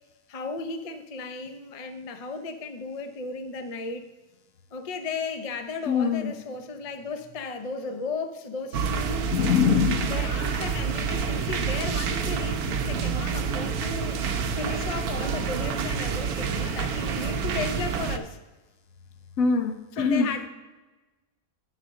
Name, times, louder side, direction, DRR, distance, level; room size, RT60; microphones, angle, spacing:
voice 1, 0.3-4.1 4.7-9.3 10.0-14.2 14.5-18.4 20.0-20.5, left 4 dB, 50° left, 8 dB, 0.4 m, -35 dB
voice 2, 5.9-6.3 9.2-10.2 19.4-20.3, left 6 dB, 70° left, 6 dB, 1.3 m, -23 dB
sound 1, 8.7-18.2, right 6 dB, 90° right, 1.2 m, -28 dB
9.6 x 4.2 x 6.3 m, 1.2 s
omnidirectional pair, 1.6 m